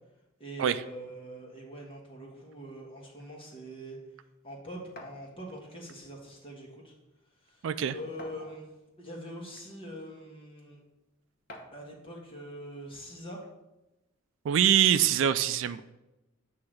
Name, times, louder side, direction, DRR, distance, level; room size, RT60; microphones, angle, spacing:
voice 1, 0.4-4.0 4.4-6.9 7.4-8.7 9.0-10.8 11.7-13.4, equal, 25° left, -1 dB, 1.4 m, -43 dB
sound 1, 5.0-5.2 6.4-6.5 6.9-7.0 8.2-8.8 9.7-9.8 11.5-11.9, left 1 dB, 45° left, 0.9 m, -47 dB
voice 2, 7.6-7.9 14.5-15.8, right 9 dB, 65° right, 12 dB, 0.3 m, -24 dB
8.4 x 2.9 x 6.2 m, 0.98 s
head